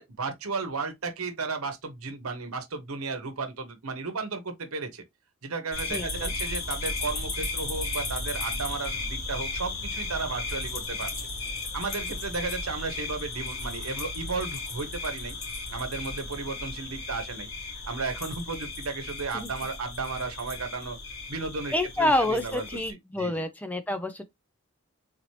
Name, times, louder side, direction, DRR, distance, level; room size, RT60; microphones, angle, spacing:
voice 1, 0.0-5.0 5.4-11.3 11.7-15.4 15.7-17.5 17.8-21.0 21.3-23.4, right 4 dB, 90° right, 1.0 m, -34 dB
sound 1, 5.7-22.9, left 3 dB, 65° left, 2.5 m, -35 dB
voice 2, 5.9-6.3 19.3-19.5 21.7-24.2, left 1 dB, 5° left, 0.4 m, -28 dB
4.1 x 2.8 x 3.1 m
head